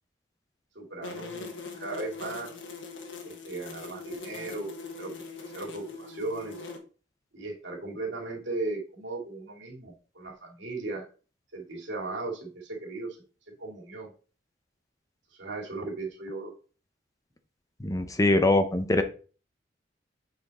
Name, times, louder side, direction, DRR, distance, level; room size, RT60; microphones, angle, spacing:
voice 1, 0.7-2.5 3.2-4.7 5.0-6.6 7.3-11.0 11.5-13.2 13.6-14.1 15.4-16.5, right 3 dB, 75° right, -2 dB, 2.7 m, -37 dB
sound 1, 1.0-6.8, left 4 dB, 80° left, 1.4 m, -41 dB
voice 2, 17.8-19.0, left 2 dB, 20° left, 8 dB, 0.7 m, -23 dB
8.1 x 4.2 x 4.2 m, 0.37 s
head